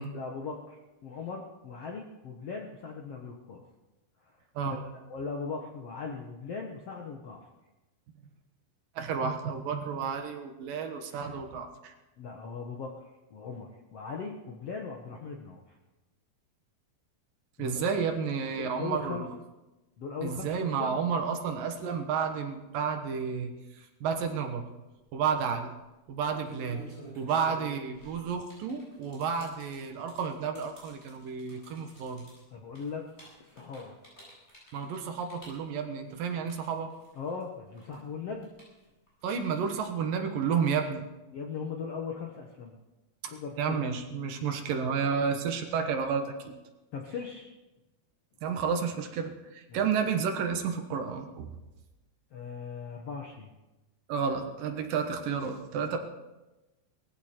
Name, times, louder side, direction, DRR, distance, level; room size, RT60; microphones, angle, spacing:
voice 1, 0.1-3.6 4.2-4.4 4.6-7.5 12.2-12.9 13.3-15.8 17.6-17.9 18.6-19.2 20.0-21.0 32.5-33.0 33.4-34.0 37.1-38.5 41.3-42.8 43.3-43.8 46.9-47.5 49.7-49.8 52.3-53.5 55.9-56.0, left 5 dB, 65° left, 1 dB, 1.6 m, -39 dB
voice 2, 9.0-11.9 17.6-19.3 20.2-24.7 25.1-25.7 26.1-26.8 27.2-32.3 34.7-36.9 39.2-41.1 43.2-46.5 48.4-51.5 54.1-56.0, right 6 dB, 70° right, 5 dB, 2.8 m, -31 dB
sound 1, 25.0-25.3 26.1-37.4 37.7-39.8, right 1 dB, 15° left, 8.2 m, -51 dB
19.5 x 15.5 x 4.4 m, 1.1 s
omnidirectional pair, 4.4 m